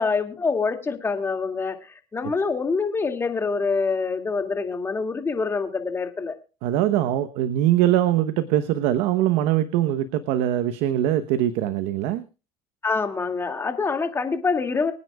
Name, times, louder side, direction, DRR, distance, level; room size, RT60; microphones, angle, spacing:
voice 1, 0.0-6.4 12.8-14.9, left 4 dB, 25° left, 5 dB, 2.3 m, -25 dB
voice 2, 6.6-12.2, right 12 dB, 75° right, 11 dB, 1.0 m, -22 dB
24.5 x 9.5 x 2.4 m, 0.31 s
supercardioid pair, 95°, 10 cm